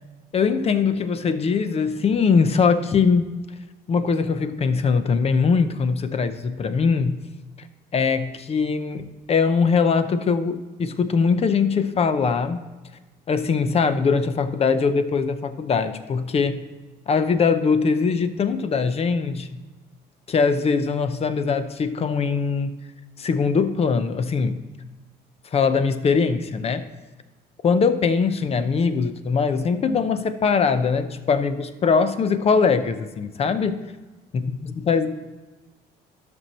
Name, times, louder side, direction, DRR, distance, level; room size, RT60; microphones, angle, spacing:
voice 1, 0.3-3.3 3.9-7.2 7.9-12.6 13.3-16.6 17.1-19.5 20.3-22.7 23.2-24.7 25.5-26.9 27.6-33.8 34.3-35.1, left 5 dB, 35° left, 11 dB, 0.7 m, -21 dB
12.0 x 6.2 x 4.3 m, 1.2 s
cardioid pair, 110°, 17 cm